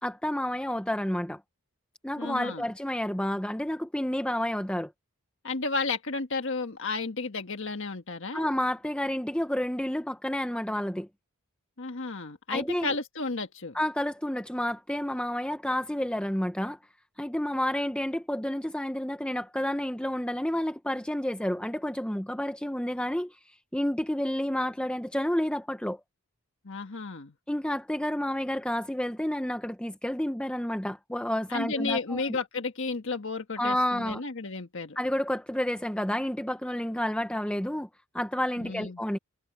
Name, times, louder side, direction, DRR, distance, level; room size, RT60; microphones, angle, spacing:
voice 1, 0.0-1.4 2.0-4.9 8.3-11.1 12.5-12.9 13.7-16.8 17.2-23.4 23.7-26.0 27.5-32.4 33.6-34.2 35.0-37.9 38.1-39.2, left 1 dB, 5° left, 0.7 m, -30 dB
voice 2, 2.2-2.6 5.4-8.5 11.8-13.8 26.6-27.3 31.5-35.0 38.6-39.0, left 3 dB, 60° left, 1.6 m, -33 dB
head